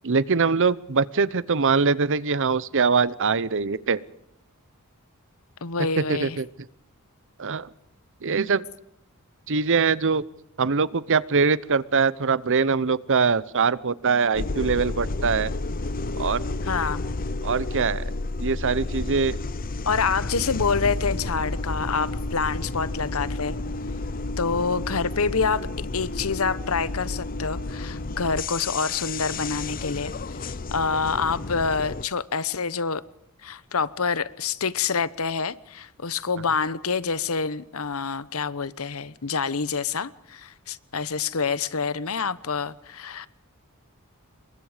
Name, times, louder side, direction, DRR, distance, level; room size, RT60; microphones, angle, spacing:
voice 1, 0.0-4.0 6.1-6.5 7.4-7.7 8.2-8.6 9.5-10.2 10.6-15.5 16.2-16.4 17.4-18.1 18.4-19.4, right 5 dB, 60° right, 19 dB, 0.9 m, -23 dB
voice 2, 5.6-6.4 16.6-17.0 19.9-23.6 24.4-33.0 33.4-43.3, left 5 dB, 70° left, 17 dB, 1.1 m, -27 dB
sound 1, 14.3-32.1, left 2 dB, 40° left, 0.7 m, -31 dB
28.0 x 22.5 x 5.1 m, 0.79 s
head